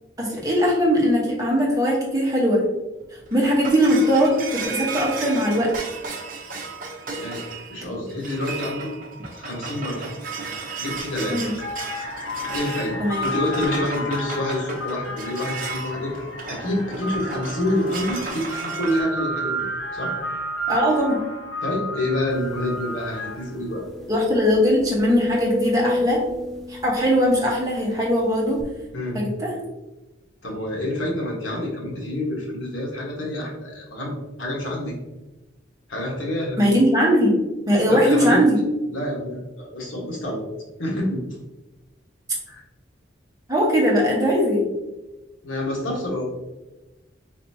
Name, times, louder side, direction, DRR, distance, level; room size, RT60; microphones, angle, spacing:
voice 1, 0.2-2.6 3.3-5.7 11.3-11.5 13.0-13.3 20.7-21.2 24.1-26.2 26.7-28.6 29.1-29.5 36.6-37.4 37.7-38.6 43.5-44.7, equal, 20° right, -4 dB, 1.1 m, -20 dB
sound 1, 3.0-19.0, right 4 dB, 45° right, 0.8 m, -34 dB
voice 2, 7.7-8.9 9.3-10.1 10.8-11.4 12.5-19.6 19.9-20.1 21.6-23.8 28.9-29.2 30.4-34.9 35.9-36.6 37.9-38.4 38.9-40.4 40.8-41.2 42.5-42.6 45.4-46.2, left 1 dB, 90° left, -2 dB, 1.4 m, -27 dB
sound 2, 10.9-11.1 11.5-23.6, equal, 75° left, 0.7 m, -32 dB
sound 3, 22.6-22.7 23.1-23.2 23.7-27.9 28.6-28.7, left 3 dB, ahead, 0.4 m, -29 dB
4.1 x 4.1 x 2.8 m, 1.1 s
head